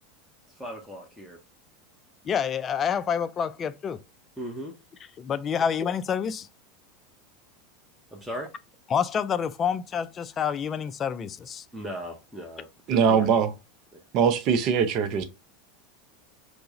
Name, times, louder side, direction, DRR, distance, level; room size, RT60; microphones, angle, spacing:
voice 1, 0.6-1.4 4.4-4.7 8.1-8.5 11.7-13.4 13.9-14.0, equal, ahead, 0.7 m, -37 dB
voice 2, 2.2-4.0 5.2-6.5 8.9-11.6, left 7 dB, 30° left, 0.3 m, -28 dB
voice 3, 12.9-13.5 14.1-15.2, right 7 dB, 50° right, 0.5 m, -21 dB
4.4 x 2.0 x 2.8 m
hypercardioid pair, 85°, 0 cm